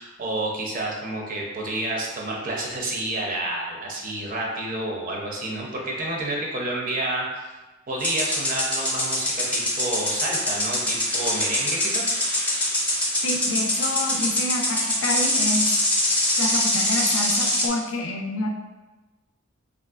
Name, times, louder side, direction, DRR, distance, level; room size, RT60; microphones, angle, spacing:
voice 1, 0.0-7.5 7.9-12.1, right 1 dB, 40° right, -2 dB, 0.5 m, -29 dB
sound 1, 8.0-17.7, left 1 dB, 5° left, 0.5 m, -24 dB
voice 2, 13.2-15.7 16.4-18.5, left 2 dB, 70° left, 2 dB, 0.4 m, -28 dB
3.1 x 2.5 x 2.3 m, 1.2 s
head